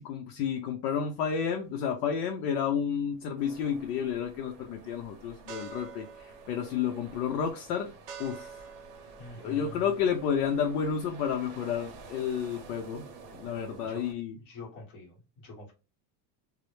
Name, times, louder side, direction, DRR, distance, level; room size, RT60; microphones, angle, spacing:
voice 1, 0.0-7.9 8.2-8.7 9.4-13.1 13.3-14.4, left 7 dB, 70° left, 0.6 m, -31 dB
sound 1, 1.3-10.6, right 6 dB, 45° right, 0.5 m, -50 dB
sound 2, 3.4-14.1, right 4 dB, 70° right, 0.8 m, -51 dB
voice 2, 9.2-10.0 13.8-14.0 14.5-15.7, left 3 dB, 25° left, 0.7 m, -46 dB
2.0 x 2.0 x 3.0 m
supercardioid pair, 165°, 48 cm